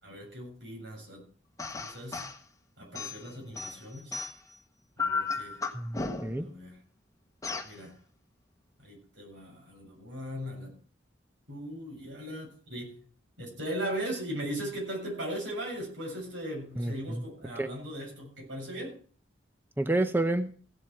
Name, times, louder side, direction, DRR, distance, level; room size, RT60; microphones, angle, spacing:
voice 1, 0.0-1.3 1.7-2.2 2.8-4.2 5.0-5.7 6.4-6.8 7.6-8.0 8.8-10.7 11.5-13.0 13.4-19.0, equal, 75° right, 0 dB, 7.3 m, -38 dB
sound 1, 1.6-2.4 2.9-4.6 5.0-6.5 7.4-7.7, left 4 dB, 20° left, 1.4 m, -34 dB
voice 2, 5.7-6.5 16.8-17.2 17.6-17.7 19.8-20.5, right 2 dB, 10° right, 9 dB, 0.6 m, -29 dB
16.0 x 7.7 x 6.0 m, 0.43 s
head